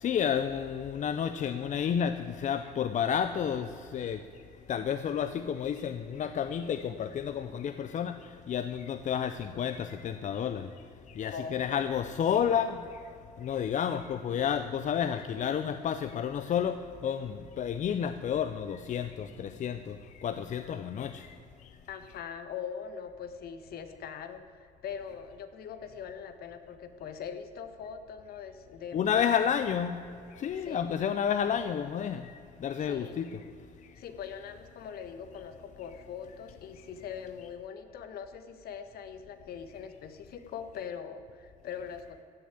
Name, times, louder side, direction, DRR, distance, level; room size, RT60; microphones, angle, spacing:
voice 1, 0.0-4.2 4.7-8.1 8.5-10.7 11.2-12.8 13.4-16.8 17.0-19.9 20.2-21.3 28.9-30.0 30.4-32.3 32.6-33.4, left 8 dB, 45° left, 10 dB, 0.7 m, -30 dB
voice 2, 11.3-11.9 21.9-29.4 30.6-30.9 32.8-33.3 34.0-42.2, left 7 dB, 65° left, 10 dB, 1.4 m, -42 dB
15.5 x 6.8 x 9.3 m, 2.5 s
cardioid pair, 110°, 17 cm